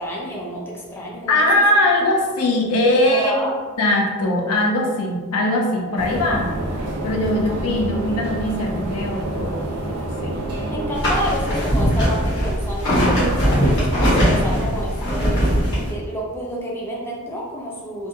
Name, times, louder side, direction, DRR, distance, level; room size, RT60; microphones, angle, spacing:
voice 1, 0.0-1.6 3.1-3.6 10.6-15.5 15.9-18.1, equal, 10° left, -4 dB, 0.4 m, -29 dB
voice 2, 1.3-3.5 3.8-6.5 7.0-9.6 10.2-10.3, left 1 dB, 85° left, 0 dB, 0.5 m, -20 dB
sound 1, 6.0-11.0, right 1 dB, 90° right, 0.5 m, -27 dB
sound 2, 10.9-15.9, equal, 55° left, 1.1 m, -19 dB
2.5 x 2.2 x 2.6 m, 1.4 s
head